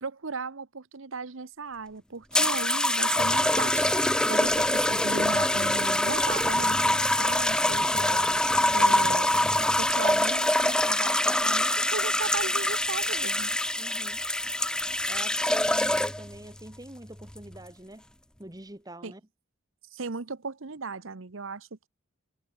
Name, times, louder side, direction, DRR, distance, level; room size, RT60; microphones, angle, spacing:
voice 1, 0.0-3.9 4.3-8.3 8.7-9.3 9.8-13.5 19.0-19.1 19.9-21.9, right 4 dB, 70° right, 1.0 m, -36 dB
sound 1, 2.3-16.3 17.2-17.6, left 1 dB, 5° left, 0.7 m, -24 dB
voice 2, 13.8-14.2 15.1-18.1 18.4-19.2, right 1 dB, 15° right, 1.4 m, -44 dB
head